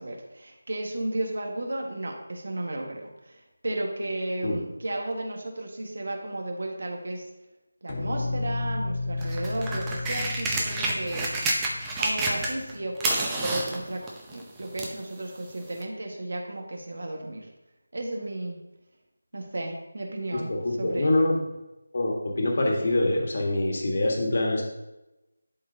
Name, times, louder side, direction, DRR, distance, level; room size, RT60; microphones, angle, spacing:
voice 1, 0.0-7.3 7.8-11.3 12.0-17.5 17.9-18.6 19.3-21.3, right 1 dB, 65° right, 1 dB, 1.6 m, -34 dB
sound 1, 7.9-13.1, left 2 dB, 30° left, 0.9 m, -34 dB
sound 2, 9.2-12.7 13.0-15.0 15.8-15.9, right 2 dB, 10° right, 0.7 m, -29 dB
voice 2, 20.3-21.3 21.9-24.6, left 1 dB, 50° left, 0 dB, 1.6 m, -25 dB
11.5 x 4.3 x 2.8 m, 0.96 s
figure-of-eight pair, 170°, 0 cm